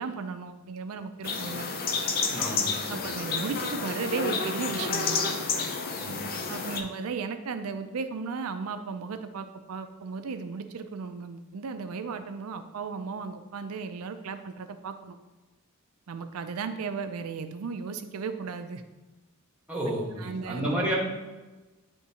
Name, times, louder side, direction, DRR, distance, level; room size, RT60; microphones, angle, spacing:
voice 1, 0.0-1.7 2.9-5.2 6.5-15.2 16.1-18.8 20.2-20.7, right 5 dB, 75° right, 9 dB, 0.5 m, -35 dB
sound 1, 1.2-6.8, left 4 dB, 45° left, 0.5 m, -30 dB
voice 2, 2.3-2.7 3.0-3.1 6.0-6.2 6.7-6.8 19.7-21.0, right 1 dB, 5° right, -4 dB, 1.4 m, -31 dB
9.4 x 3.5 x 2.8 m, 1.2 s
head